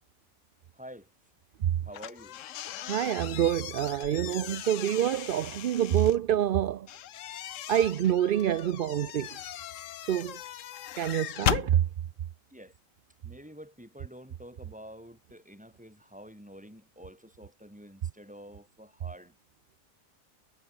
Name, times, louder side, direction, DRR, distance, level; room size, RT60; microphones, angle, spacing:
voice 1, 0.7-1.1 1.8-2.4 12.5-12.7 13.2-19.4, equal, 5° right, 7.2 m, -48 dB
sound 1, 1.9-6.2 6.9-11.7, left 12 dB, 70° left, 1.0 m, -37 dB
voice 2, 2.9-6.9 7.7-9.4 10.0-10.4 11.0-11.8, right 11 dB, 60° right, 0.6 m, -26 dB
omnidirectional pair, 1.4 m